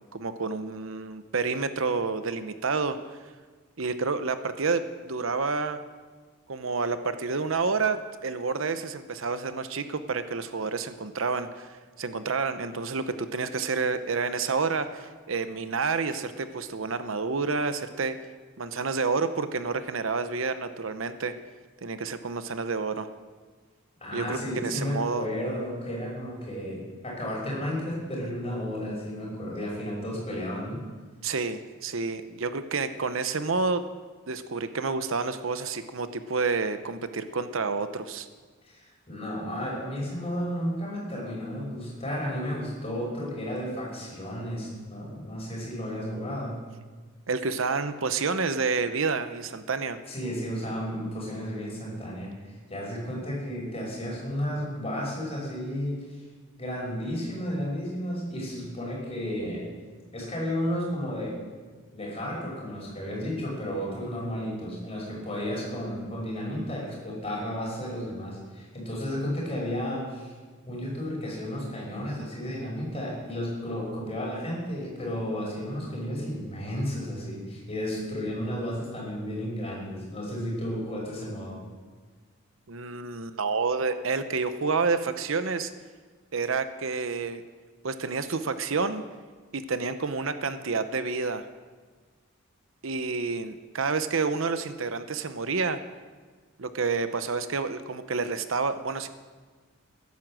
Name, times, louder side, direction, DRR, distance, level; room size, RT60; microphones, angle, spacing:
voice 1, 0.0-3.0 3.8-5.8 6.5-18.2 18.6-21.4 21.8-23.1 24.1-25.3 31.2-33.8 34.3-38.3 47.3-50.0 82.7-85.7 86.3-87.4 87.8-89.1 89.5-91.4 92.8-95.8 96.6-99.1, right 4 dB, 65° right, 11 dB, 0.8 m, -29 dB
voice 2, 24.0-30.8 38.7-46.5 50.1-52.3 52.7-56.2 56.6-59.7 60.1-61.4 61.9-70.3 70.7-81.6, equal, 30° left, -3 dB, 6.0 m, -33 dB
15.5 x 11.0 x 7.6 m, 1.4 s
head